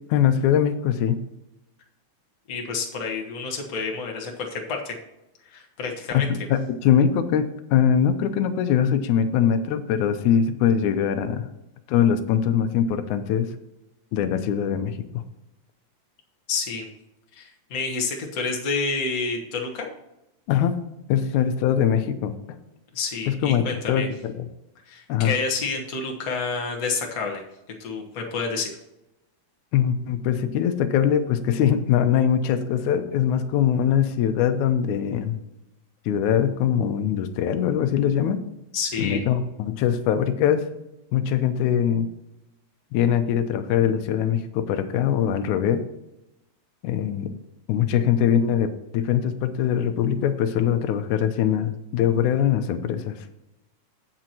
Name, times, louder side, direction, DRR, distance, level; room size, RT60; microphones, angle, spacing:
voice 1, 0.1-1.2 6.1-11.5 11.9-13.5 14.1-15.2 20.5-20.8 21.1-22.3 23.3-24.5 25.1-25.3 29.7-35.4 36.1-38.4 39.0-40.6 41.1-42.1 42.9-45.8 46.8-47.3 47.7-53.2, left 9 dB, 85° left, 9 dB, 2.1 m, -22 dB
voice 2, 2.5-4.9 5.4-6.3 16.5-16.9 17.3-19.9 22.9-24.1 24.8-27.4 27.8-28.7 38.7-39.2, left 4 dB, 45° left, 1 dB, 1.1 m, -29 dB
16.5 x 6.1 x 2.9 m, 0.91 s
omnidirectional pair, 3.4 m